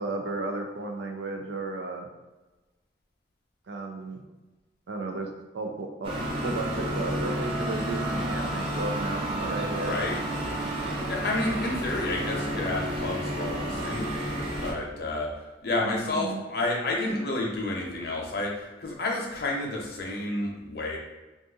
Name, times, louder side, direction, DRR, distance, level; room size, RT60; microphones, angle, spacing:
voice 1, 0.0-2.1 3.7-4.2 4.9-6.1 6.4-10.0 16.0-16.4, right 2 dB, 85° right, 3 dB, 0.4 m, -34 dB
sound 1, 6.0-14.7, right 1 dB, 30° right, 0.6 m, -31 dB
voice 2, 9.8-10.2 11.1-15.3 15.6-21.0, left 2 dB, 60° left, -1 dB, 0.7 m, -30 dB
2.6 x 2.4 x 3.7 m, 1.2 s
head